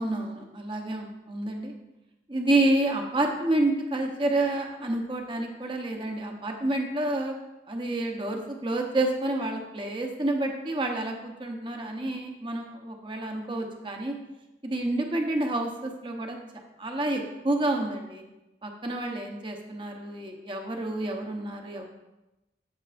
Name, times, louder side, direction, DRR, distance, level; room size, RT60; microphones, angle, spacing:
voice 1, 0.0-1.7 2.3-7.3 7.7-14.2 14.6-16.4 16.8-18.2 18.6-21.8, right 2 dB, 30° right, 2 dB, 1.0 m, -29 dB
14.0 x 6.8 x 2.6 m, 0.97 s
head